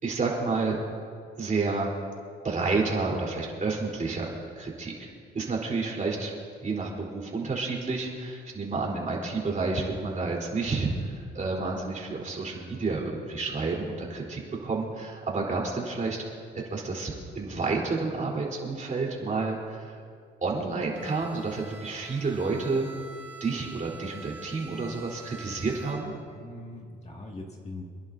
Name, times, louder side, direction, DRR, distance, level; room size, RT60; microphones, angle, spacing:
voice 1, 0.0-0.8 1.4-1.9 2.4-5.1 5.3-6.3 6.6-16.2 16.7-19.9 20.4-22.9 23.4-26.1, right 3 dB, 40° right, -2 dB, 3.8 m, -30 dB
Bowed string instrument, 20.9-26.4, right 3 dB, 10° right, 2.6 m, -46 dB
voice 2, 26.3-27.8, left 2 dB, 35° left, 0 dB, 2.1 m, -42 dB
28.5 x 11.0 x 2.7 m, 2.2 s
cardioid pair, 90°, 20 cm